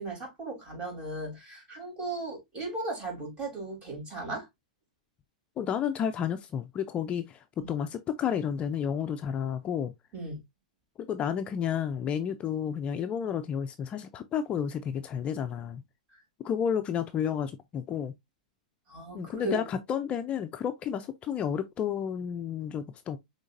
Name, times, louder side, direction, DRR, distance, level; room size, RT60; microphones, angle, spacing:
voice 1, 0.0-4.5 7.6-7.7 10.1-10.4 16.1-16.2 18.9-19.6, right 2 dB, 25° right, 3.6 m, -37 dB
voice 2, 5.6-9.9 11.0-15.8 16.4-18.1 19.1-23.2, left 8 dB, 30° left, 0.5 m, -31 dB
6.2 x 3.3 x 2.6 m
hypercardioid pair, 110°, 4 cm